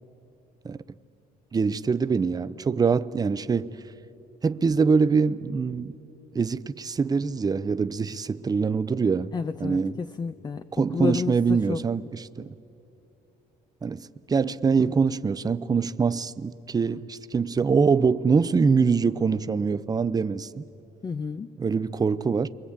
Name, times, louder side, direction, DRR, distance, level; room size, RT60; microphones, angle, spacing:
voice 1, 1.5-3.8 4.4-5.9 6.3-9.3 9.6-9.9 10.7-12.5 13.8-20.6 21.6-22.5, right 5 dB, 20° right, 0.7 m, -24 dB
voice 2, 9.3-10.7 10.9-11.8 21.0-21.5, left 5 dB, 25° left, 0.6 m, -30 dB
29.0 x 23.0 x 8.8 m
cardioid pair, 110°, 17 cm